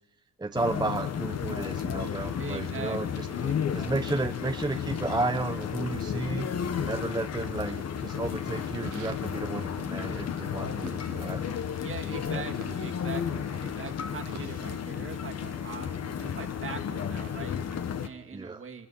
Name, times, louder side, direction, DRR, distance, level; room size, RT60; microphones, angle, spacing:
voice 1, 0.4-3.3 3.7-6.5 6.8-11.5 12.3-12.4 18.3-18.6, right 2 dB, 15° right, 6 dB, 0.9 m, -33 dB
sound 1, 0.5-18.1, left 8 dB, 55° left, 1.4 m, -33 dB
voice 2, 2.4-3.9 11.7-18.9, right 6 dB, 45° right, 4 dB, 2.2 m, -42 dB
sound 2, 3.2-17.9, right 10 dB, 85° right, 1.7 m, -55 dB
25.5 x 21.0 x 5.7 m, 1.0 s
cardioid pair, 90°, 30 cm